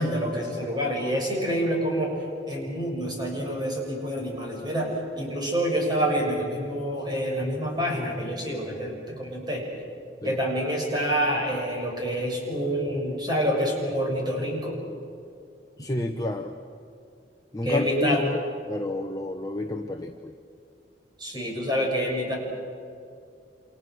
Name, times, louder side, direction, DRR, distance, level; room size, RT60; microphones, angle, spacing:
voice 1, 0.0-2.1 2.5-4.9 5.2-9.6 10.2-14.8 17.6-18.2 21.2-22.3, equal, 25° right, -1 dB, 7.1 m, -27 dB
voice 2, 15.8-16.6 17.5-18.4 18.7-20.3, left 1 dB, 20° left, 3 dB, 1.0 m, -30 dB
29.0 x 28.0 x 6.5 m, 2.5 s
head